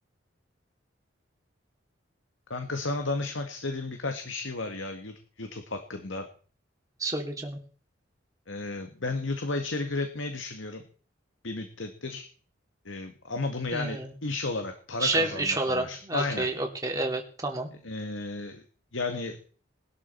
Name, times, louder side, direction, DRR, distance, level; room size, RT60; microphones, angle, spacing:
voice 1, 2.5-6.3 8.5-10.8 11.4-12.3 12.9-16.5 17.8-18.6 18.9-19.4, left 3 dB, 75° left, 6 dB, 1.9 m, -33 dB
voice 2, 7.0-7.6 13.7-14.1 15.0-17.7, right 2 dB, 15° right, 2 dB, 3.0 m, -29 dB
21.0 x 12.5 x 4.6 m, 0.42 s
head